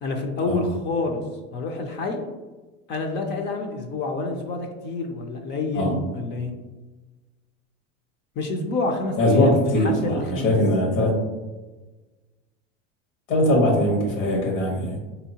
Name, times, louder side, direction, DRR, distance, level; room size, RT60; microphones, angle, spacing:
voice 1, 0.0-1.2 1.5-2.2 2.9-6.5 8.4-10.6, left 3 dB, 30° left, 3 dB, 0.4 m, -28 dB
voice 2, 9.2-11.1 13.3-15.0, left 1 dB, 90° left, -1 dB, 1.3 m, -21 dB
3.8 x 2.8 x 2.8 m, 1.2 s
supercardioid pair, 120°, 38 cm